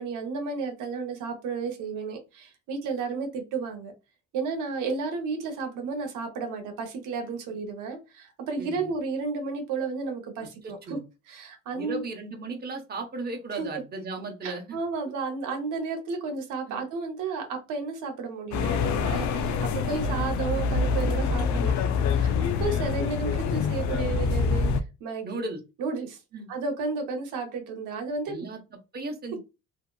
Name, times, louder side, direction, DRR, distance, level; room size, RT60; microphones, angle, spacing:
voice 1, 0.0-3.9 4.3-11.0 11.3-12.0 13.5-13.7 14.4-22.3 22.6-24.7 25.0-25.4 25.8-26.2 26.5-28.3, right 4 dB, 90° right, 3 dB, 0.7 m, -32 dB
voice 2, 8.6-8.9 10.4-11.0 11.7-14.8 16.7-16.8 25.2-25.6 26.3-26.5 28.3-28.6 28.9-29.4, right 3 dB, 30° right, 2 dB, 0.8 m, -36 dB
sound 1, 18.5-24.8, left 5 dB, 70° left, 0.4 m, -26 dB
2.8 x 2.4 x 2.2 m, 0.28 s
cardioid pair, 90°, 30 cm